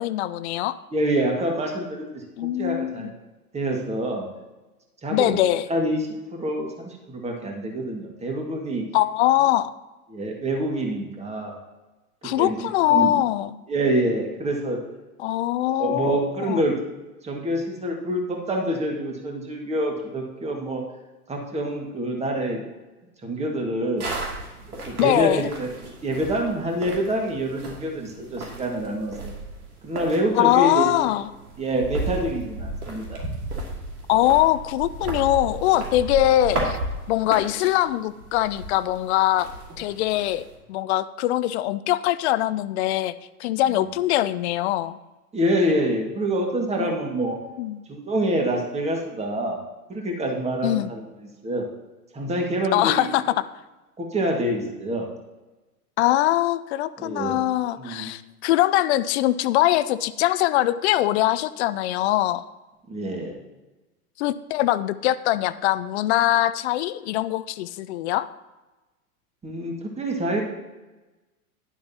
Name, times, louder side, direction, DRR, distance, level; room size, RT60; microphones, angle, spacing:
voice 1, 0.0-0.8 2.4-3.1 5.1-5.7 8.9-9.7 12.2-13.6 15.2-16.2 16.5-16.6 25.0-25.5 30.4-31.3 34.1-36.8 37.1-39.5 39.8-43.1 43.4-45.0 46.8-47.0 47.6-47.8 50.6-50.9 52.7-53.4 56.0-62.4 64.2-68.3, left 14 dB, 50° left, 15 dB, 0.5 m, -22 dB
voice 2, 0.9-2.2 2.6-3.1 3.5-4.3 5.0-5.4 5.7-8.9 10.1-11.6 12.4-13.2 13.7-14.8 15.7-16.7 17.2-20.8 21.3-22.6 23.2-24.1 24.7-29.3 29.8-30.9 31.6-33.2 45.3-47.4 47.9-49.6 49.9-51.0 51.4-51.7 52.1-53.1 54.0-55.1 57.0-57.4 57.8-58.1 62.9-63.4 69.4-70.4, right 1 dB, 15° right, 1 dB, 1.9 m, -26 dB
sound 1, 24.0-40.5, right 2 dB, 75° right, 2.8 m, -34 dB
11.5 x 10.5 x 2.9 m, 1.1 s
figure-of-eight pair, 95°, 45 cm